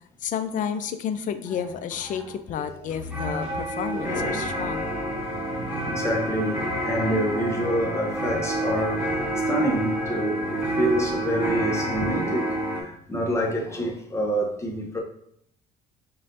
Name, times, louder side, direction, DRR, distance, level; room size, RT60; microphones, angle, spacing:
voice 1, 0.2-4.9 11.9-12.2, left 8 dB, 50° left, 0.4 m, -31 dB
voice 2, 2.6-2.9 3.9-5.2 5.9-9.1 9.5-15.0, equal, 15° left, 0.8 m, -28 dB
sound 1, 2.9-12.8, right 1 dB, 10° right, 1.3 m, -28 dB
5.5 x 2.5 x 2.6 m
cardioid pair, 110°, 17 cm